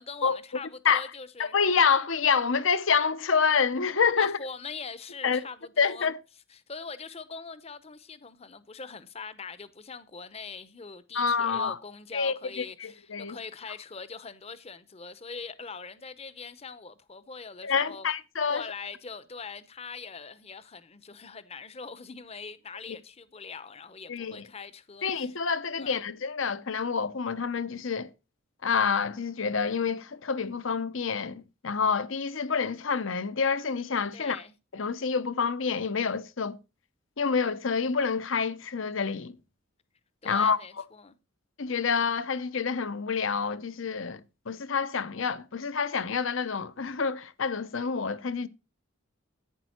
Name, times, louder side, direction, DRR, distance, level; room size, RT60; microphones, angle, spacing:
voice 1, 0.0-1.5 4.2-6.1 6.5-18.1 18.5-25.4 25.8-26.1 34.1-34.6 40.2-41.2, left 5 dB, 30° left, 0.7 m, -42 dB
voice 2, 1.4-4.4 5.2-5.4 5.8-6.2 11.1-11.8 12.1-13.4 17.6-18.6 24.1-24.5 25.0-28.1 28.6-34.4 34.7-36.6 37.2-39.3 40.2-40.6 41.6-44.2 44.5-48.5, left 5 dB, 70° left, 0.8 m, -27 dB
11.0 x 9.0 x 4.4 m
head